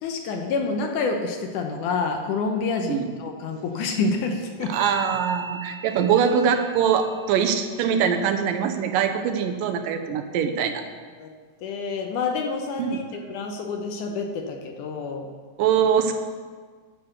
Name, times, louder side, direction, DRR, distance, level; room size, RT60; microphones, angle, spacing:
voice 1, 0.0-4.7 11.2-11.3 11.6-15.3, left 4 dB, 75° left, 3 dB, 2.1 m, -28 dB
sound 1, 4.7-8.3, right 2 dB, 60° right, 1.2 m, -41 dB
voice 2, 4.7-10.8 12.8-13.0 15.6-16.1, right 7 dB, 80° right, 6 dB, 2.3 m, -23 dB
9.7 x 6.6 x 6.6 m, 1.5 s
omnidirectional pair, 4.0 m